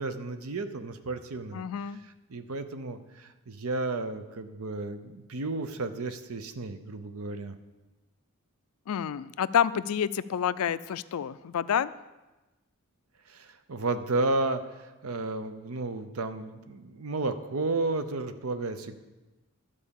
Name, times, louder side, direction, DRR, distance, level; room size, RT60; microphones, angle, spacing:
voice 1, 0.0-7.6 13.3-19.0, right 2 dB, 70° right, 10 dB, 0.7 m, -33 dB
voice 2, 1.5-2.0 8.9-11.9, left 8 dB, 75° left, 16 dB, 0.4 m, -28 dB
12.0 x 4.9 x 7.0 m, 1.1 s
head